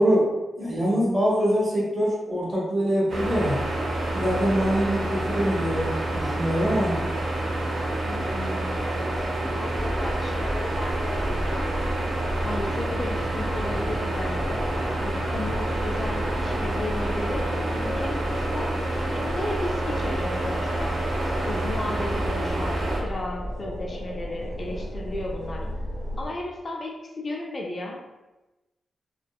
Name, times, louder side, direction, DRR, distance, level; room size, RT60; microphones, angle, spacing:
voice 1, 0.0-3.6 4.1-7.0, equal, 40° right, -6 dB, 1.2 m, -24 dB
sound 1, 3.1-23.0, right 1 dB, 70° right, 0.6 m, -28 dB
voice 2, 8.0-9.1 9.4-11.7 12.4-14.7 15.0-17.4 17.8-18.7 19.0-21.0 21.4-25.7 26.2-28.0, left 2 dB, 40° left, -1 dB, 0.4 m, -34 dB
sound 2, 9.7-26.3, equal, 10° left, 1.5 m, -34 dB
2.6 x 2.2 x 2.3 m, 1.0 s
cardioid pair, 90°, 0 cm